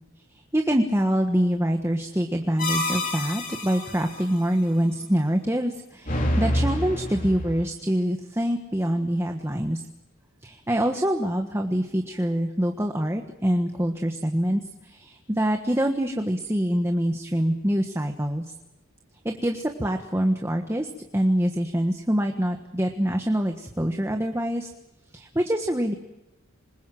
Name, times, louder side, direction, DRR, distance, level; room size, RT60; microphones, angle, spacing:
voice 1, 0.5-9.9 10.4-18.4 19.2-24.7 25.1-25.9, equal, 10° right, 4 dB, 1.4 m, -25 dB
sound 1, 2.6-4.2 6.1-7.6, left 1 dB, 40° left, 4.4 m, -27 dB
26.5 x 21.5 x 7.7 m, 0.92 s
head